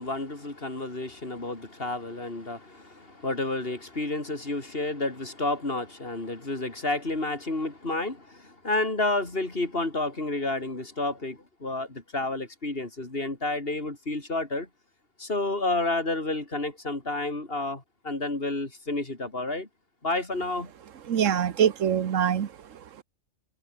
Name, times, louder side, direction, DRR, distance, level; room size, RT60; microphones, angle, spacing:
voice 1, 0.0-14.7 15.2-19.7 20.0-20.7, left 2 dB, 45° left, 4.0 m, -30 dB
voice 2, 21.1-23.0, right 9 dB, 80° right, 1.4 m, -25 dB
omnidirectional pair, 1.3 m